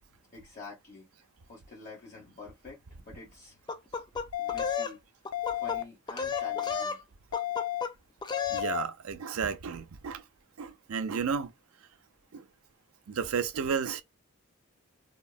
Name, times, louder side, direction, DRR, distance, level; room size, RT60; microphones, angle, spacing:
voice 1, 0.2-1.1 1.5-3.6 4.4-5.0 5.5-7.0, left 3 dB, 35° left, 1.0 m, -47 dB
sound 1, 3.7-4.9 5.2-5.8 6.1-7.0 7.3-7.9 8.2-8.7, left 5 dB, 20° left, 0.3 m, -34 dB
sound 2, 4.3-4.8 5.3-5.8 6.3-6.8 7.3-7.8 8.3-8.8, left 15 dB, 85° left, 0.4 m, -32 dB
voice 2, 8.5-10.2 10.6-11.5 12.3-12.4 13.1-14.0, right 6 dB, 80° right, 0.5 m, -32 dB
3.5 x 2.1 x 2.3 m
head